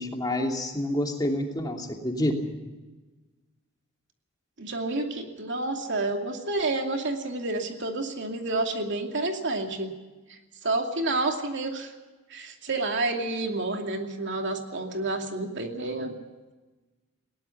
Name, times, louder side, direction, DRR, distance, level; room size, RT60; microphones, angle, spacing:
voice 1, 0.0-2.5, left 1 dB, 20° left, 2 dB, 2.8 m, -28 dB
voice 2, 4.6-9.9 10.3-11.9 12.3-16.2, right 2 dB, 60° right, 3 dB, 2.6 m, -29 dB
20.5 x 18.5 x 7.1 m, 1.2 s
head